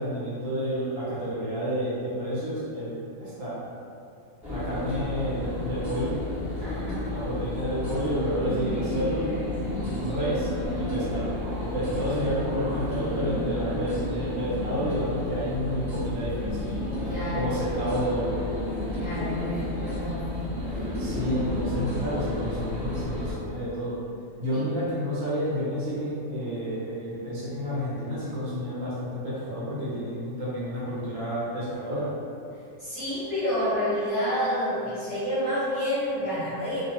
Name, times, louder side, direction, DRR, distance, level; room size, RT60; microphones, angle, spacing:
voice 1, 0.0-3.6 4.5-6.1 6.7-6.8 7.1-9.3 10.0-10.5 10.8-11.3 11.6-16.7 17.3-18.3 21.0-24.0 24.4-32.1, equal, 65° right, -8 dB, 1.1 m, -30 dB
sound 1, 4.4-23.3, left 1 dB, 15° right, 0.9 m, -31 dB
voice 2, 6.6-7.1 17.1-17.4 19.0-20.5 24.5-24.6 32.8-36.8, equal, 30° left, -15 dB, 0.8 m, -29 dB
2.5 x 2.3 x 2.8 m, 2.5 s
omnidirectional pair, 1.5 m